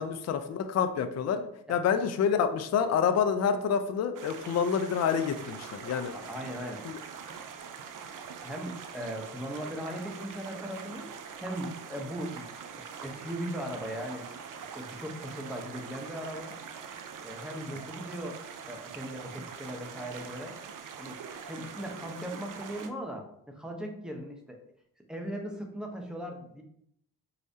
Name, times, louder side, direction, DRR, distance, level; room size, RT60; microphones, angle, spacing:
voice 1, 0.0-6.1 6.8-7.0, left 7 dB, 40° left, 8 dB, 0.4 m, -28 dB
sound 1, 4.2-22.9, right 6 dB, 50° right, 0.5 m, -43 dB
voice 2, 6.1-7.0 7.7-7.8 8.4-11.1 11.4-14.3 14.7-16.5 17.2-20.6 21.0-21.2 21.5-24.6 25.1-26.6, equal, ahead, 2 dB, 0.8 m, -38 dB
4.7 x 2.1 x 2.7 m, 0.71 s
supercardioid pair, 55°, 40 cm